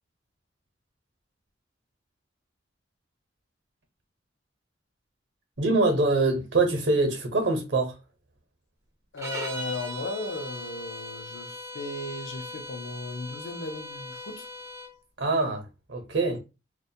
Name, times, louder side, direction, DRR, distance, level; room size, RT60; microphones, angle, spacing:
voice 1, 5.6-8.0 15.2-16.4, right 3 dB, 65° right, 0.8 m, -24 dB
voice 2, 9.1-14.5, left 2 dB, 80° left, 0.5 m, -36 dB
sound 1, 9.2-14.9, equal, 15° right, 0.4 m, -39 dB
2.3 x 2.1 x 2.6 m
head